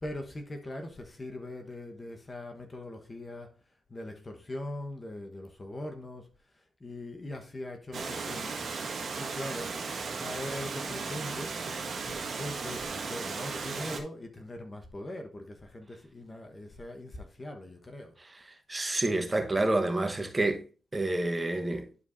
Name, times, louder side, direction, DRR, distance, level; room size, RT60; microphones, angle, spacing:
voice 1, 0.0-3.5 3.9-6.3 6.5-8.5 9.2-11.6 12.0-18.1, left 1 dB, 30° left, 1.3 m, -41 dB
Water, 7.9-14.0, right 4 dB, 60° right, 1.7 m, -36 dB
voice 2, 18.7-20.6 20.9-21.8, right 2 dB, 25° right, 1.3 m, -28 dB
11.0 x 4.7 x 2.7 m
supercardioid pair, 50°, 0 cm